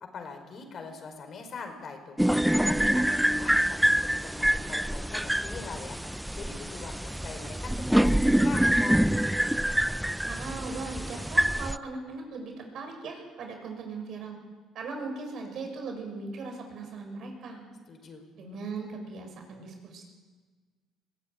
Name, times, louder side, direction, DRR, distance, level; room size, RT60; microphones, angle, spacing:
voice 1, 0.1-2.2 2.6-6.0 6.3-9.0 17.9-18.2, left 4 dB, 50° left, 6 dB, 5.1 m, -42 dB
sound 1, 2.2-11.8, right 1 dB, 5° right, 0.6 m, -26 dB
voice 2, 10.0-14.4 14.7-17.6 18.4-20.0, right 4 dB, 65° right, 3 dB, 6.7 m, -39 dB
22.0 x 15.5 x 9.7 m, 1.4 s
supercardioid pair, 75°, 0 cm